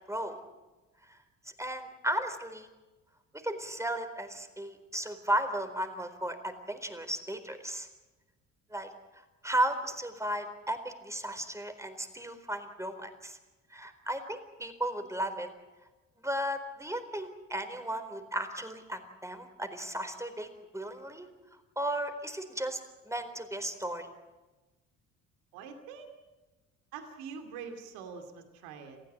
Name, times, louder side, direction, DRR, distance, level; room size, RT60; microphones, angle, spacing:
voice 1, 0.1-0.4 1.1-1.2 1.6-2.7 3.4-7.9 8.7-8.9 9.4-13.4 13.7-15.5 16.2-20.5 20.7-21.3 21.8-22.8 23.1-24.1, right 1 dB, 10° right, 8 dB, 4.2 m, -35 dB
voice 2, 25.5-26.1 26.9-29.0, right 6 dB, 75° right, 6 dB, 2.6 m, -44 dB
28.5 x 15.5 x 8.7 m, 1.1 s
hypercardioid pair, 55°, 38 cm